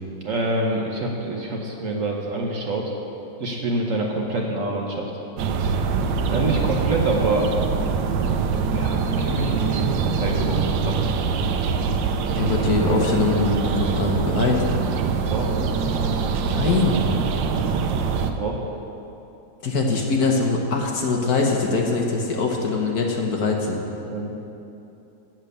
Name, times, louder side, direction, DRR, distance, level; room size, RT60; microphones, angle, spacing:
voice 1, 0.2-2.9 3.4-5.1 6.3-7.5 8.7-11.0 15.3-15.5 18.4-18.6 24.1-24.3, right 2 dB, 55° right, 0 dB, 1.2 m, -26 dB
sound 1, 5.4-18.3, right 5 dB, 85° right, 1.3 m, -24 dB
voice 2, 12.3-14.6 16.5-17.0 19.6-23.8, left 3 dB, 60° left, 0 dB, 1.5 m, -22 dB
8.8 x 7.5 x 6.7 m, 2.8 s
omnidirectional pair, 1.9 m